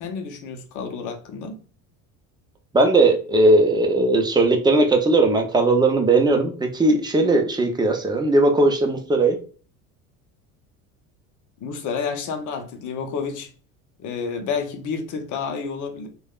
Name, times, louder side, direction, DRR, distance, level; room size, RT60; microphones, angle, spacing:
voice 1, 0.0-1.6 11.6-13.5 14.0-16.1, left 5 dB, 50° left, 0.7 m, -30 dB
voice 2, 2.7-9.4, right 2 dB, 10° right, 0.6 m, -18 dB
3.3 x 2.3 x 2.3 m
supercardioid pair, 85°, 41 cm